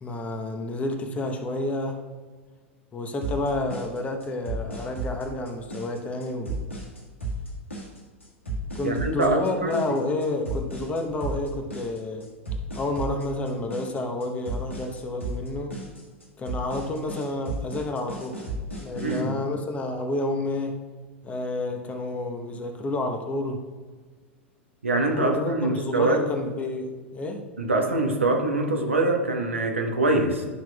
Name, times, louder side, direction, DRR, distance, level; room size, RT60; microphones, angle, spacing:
voice 1, 0.0-2.0 2.9-6.6 8.7-12.2 12.7-15.8 16.4-18.4 18.8-20.7 21.2-23.6 25.1-27.4, left 2 dB, 20° left, 4 dB, 1.0 m, -30 dB
sound 1, 3.2-19.2, right 1 dB, 90° left, 1.7 m, -34 dB
voice 2, 8.8-9.8 19.0-19.4 24.8-26.2 27.6-30.5, right 2 dB, 85° right, 2 dB, 1.1 m, -24 dB
11.5 x 6.0 x 2.3 m, 1.5 s
figure-of-eight pair, 95°, 7 cm